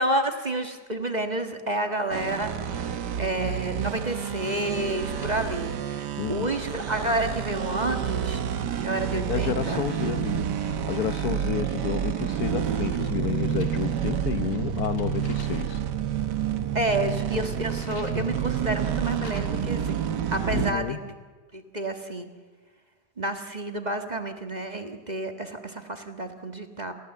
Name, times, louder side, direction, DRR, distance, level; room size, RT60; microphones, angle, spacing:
voice 1, 0.0-2.5 3.2-8.4 8.8-9.8 16.7-21.1 21.5-22.3 23.2-26.9, right 1 dB, 25° right, 1.6 m, -30 dB
sound 1, 2.1-20.7, right 8 dB, 75° right, 1.7 m, -29 dB
sound 2, 3.8-4.5 4.7-5.8 6.4-7.2 8.2-8.9 9.3-11.6 11.9-12.4 13.3-15.8 17.3-18.3 19.0-19.8, left 2 dB, 50° left, 2.9 m, -51 dB
voice 2, 6.2-6.5 9.3-15.8 20.5-21.0, left 8 dB, 65° left, 1.3 m, -30 dB
29.0 x 15.0 x 7.8 m
omnidirectional pair, 1.8 m